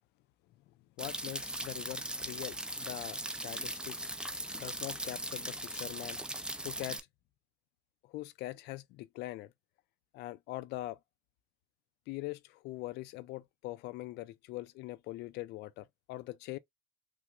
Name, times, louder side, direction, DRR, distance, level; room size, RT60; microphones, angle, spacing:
voice 1, 1.0-4.0 4.5-6.2 6.6-7.0 8.1-9.5 10.1-11.0 12.1-16.6, left 17 dB, 85° left, 0.4 m, -42 dB
jp drippage, 1.0-7.0, right 1 dB, 5° right, 0.5 m, -39 dB
6.0 x 2.1 x 2.4 m
cardioid pair, 110°, 17 cm